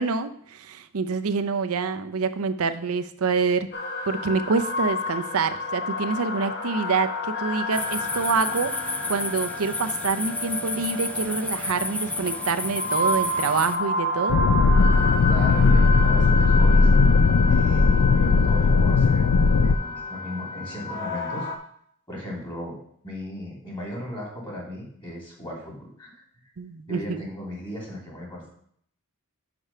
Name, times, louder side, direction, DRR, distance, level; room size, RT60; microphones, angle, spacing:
voice 1, 0.0-3.7 4.1-14.4 26.6-27.3, right 5 dB, 65° right, 10 dB, 0.6 m, -26 dB
sound 1, 3.7-21.6, left 2 dB, 50° left, 1.0 m, -30 dB
sound 2, 7.7-13.8, left 2 dB, 5° left, 0.3 m, -31 dB
sound 3, 14.3-19.7, left 4 dB, 70° left, 0.4 m, -18 dB
voice 2, 15.0-16.9 17.5-19.3 19.6-21.5 22.1-22.8 23.0-26.2 26.9-28.5, left 1 dB, 20° left, -2 dB, 2.5 m, -36 dB
6.1 x 5.0 x 5.5 m, 0.65 s
head